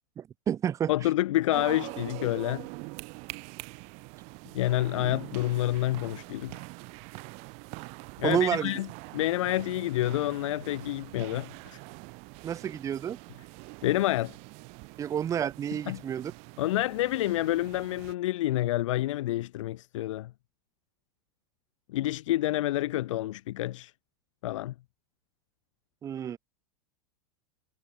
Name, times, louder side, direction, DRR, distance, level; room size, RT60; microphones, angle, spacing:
voice 1, 0.2-0.9 8.2-8.7 12.4-13.2 15.0-16.3 26.0-26.4, right 9 dB, 20° right, 2.8 m, -29 dB
voice 2, 0.9-2.7 4.5-6.6 8.2-8.9 9.1-11.8 13.8-14.3 15.9-16.0 16.6-20.3 21.9-23.9 24.4-24.7, left 15 dB, 75° left, 1.2 m, -28 dB
sound 1, 1.5-18.1, right 31 dB, 45° right, 4.7 m, -44 dB
supercardioid pair, 165°, 16 cm